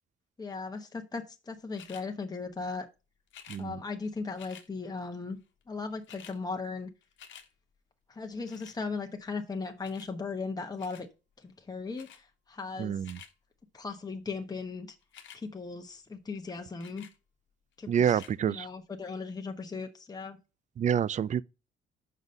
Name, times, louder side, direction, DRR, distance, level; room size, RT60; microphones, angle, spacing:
voice 1, 0.4-2.9 3.6-5.4 5.7-6.9 8.1-11.1 11.4-12.9 13.7-14.9 15.3-17.1 17.8-18.2 18.5-20.4, left 4 dB, 20° left, 1.0 m, -37 dB
sound 1, 1.7-2.1 3.3-3.6 4.4-4.7 5.6-5.7 5.9-6.4 6.8-7.5 8.5-8.8 9.8-10.1 10.8-11.1 11.9-12.2 12.8-13.3 15.0-15.4 16.8-17.2 18.0-18.3 19.0-19.1, left 9 dB, 75° left, 1.1 m, -51 dB
voice 2, 3.5-3.8 12.8-13.2 17.9-18.7 20.8-21.4, right 8 dB, 40° right, 0.4 m, -28 dB
6.0 x 5.6 x 5.2 m
cardioid pair, 90°, 20 cm